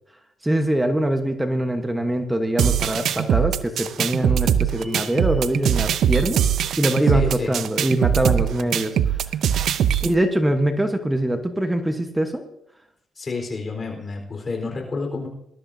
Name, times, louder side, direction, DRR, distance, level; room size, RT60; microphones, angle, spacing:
voice 1, 0.4-6.4 6.8-9.2 10.0-12.4, right 1 dB, 10° right, 6 dB, 1.1 m, -23 dB
sound 1, 2.6-10.1, right 9 dB, 70° right, 0.6 m, -22 dB
sound 2, 4.8-5.6, left 3 dB, 5° left, 5.1 m, -39 dB
voice 2, 7.0-7.6 13.2-15.3, left 3 dB, 35° left, 1 dB, 4.2 m, -29 dB
20.0 x 12.5 x 2.7 m, 0.78 s
cardioid pair, 90°, 0 cm